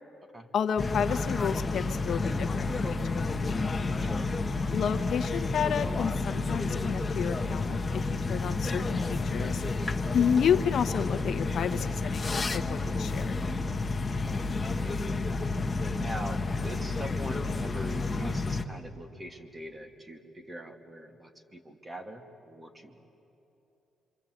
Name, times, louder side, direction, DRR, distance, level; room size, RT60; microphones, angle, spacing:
voice 1, 0.5-3.0 3.3-3.6 4.7-9.6 10.1-13.4, left 7 dB, 60° left, 9 dB, 1.0 m, -30 dB
sound 1, 0.8-18.6, left 3 dB, 25° left, 1.2 m, -30 dB
voice 2, 14.2-15.0 16.0-23.1, right 1 dB, 20° right, 4 dB, 2.5 m, -42 dB
27.0 x 26.0 x 8.0 m, 2.9 s
cardioid pair, 90°, 0 cm